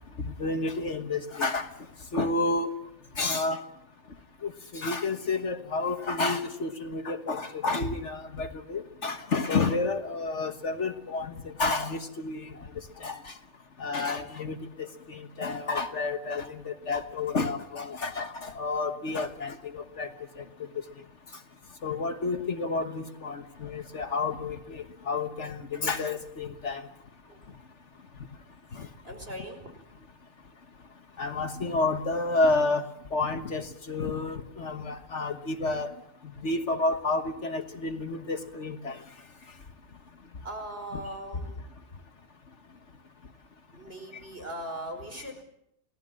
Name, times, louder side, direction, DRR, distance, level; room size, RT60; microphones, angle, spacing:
voice 1, 0.4-1.7 2.1-2.7 3.2-3.6 4.4-12.5 13.0-13.2 13.8-20.1 21.8-26.8 31.2-32.8 33.1-35.9 36.4-39.0 40.9-41.0, left 3 dB, 55° left, 8 dB, 1.6 m, -30 dB
voice 2, 29.0-29.7 40.4-41.6 43.7-45.4, right 1 dB, 40° right, 4 dB, 5.3 m, -39 dB
29.5 x 18.0 x 7.6 m, 0.79 s
omnidirectional pair, 1.5 m